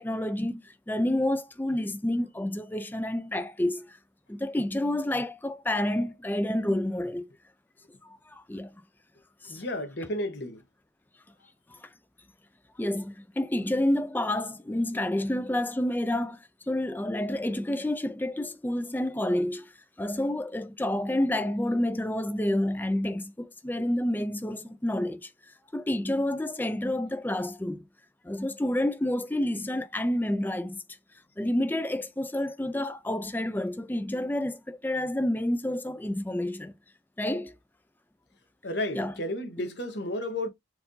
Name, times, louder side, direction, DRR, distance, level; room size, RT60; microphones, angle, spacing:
voice 1, 0.0-4.0 4.3-7.3 8.0-8.7 9.4-9.6 11.7-11.9 12.8-16.4 16.7-19.7 20.0-25.3 25.7-27.8 28.2-30.8 31.4-36.7 37.2-37.5 38.9-39.1, left 1 dB, 10° left, 0.4 m, -29 dB
voice 2, 9.4-10.6 38.6-40.5, left 1 dB, 65° left, 1.1 m, -32 dB
4.5 x 2.6 x 3.8 m
head